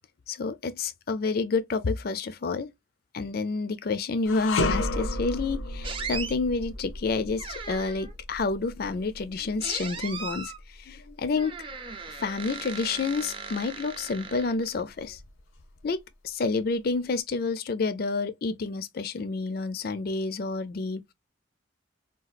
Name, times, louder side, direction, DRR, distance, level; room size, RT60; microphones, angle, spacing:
voice 1, 0.3-2.7 3.1-10.5 10.8-11.5 12.2-15.2 15.8-16.0 16.2-21.1, left 4 dB, 50° left, 0.4 m, -29 dB
sound 1, 4.2-13.5 13.9-14.1 15.0-15.8, left 2 dB, 90° left, 0.8 m, -34 dB
sound 2, 5.8-6.4 7.4-8.1 9.6-10.6 11.4-14.8, right 5 dB, 25° right, 0.5 m, -38 dB
4.0 x 2.3 x 2.4 m
head